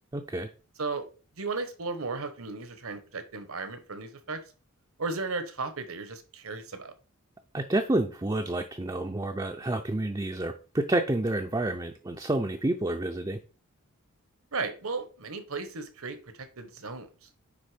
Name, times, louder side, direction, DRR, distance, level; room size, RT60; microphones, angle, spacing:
voice 1, 0.1-0.5 7.5-13.4, right 2 dB, 20° right, 5 dB, 0.5 m, -29 dB
voice 2, 1.4-4.4 5.0-6.9 14.5-17.3, right 3 dB, 80° right, 9 dB, 1.3 m, -35 dB
9.7 x 3.6 x 5.1 m, 0.37 s
head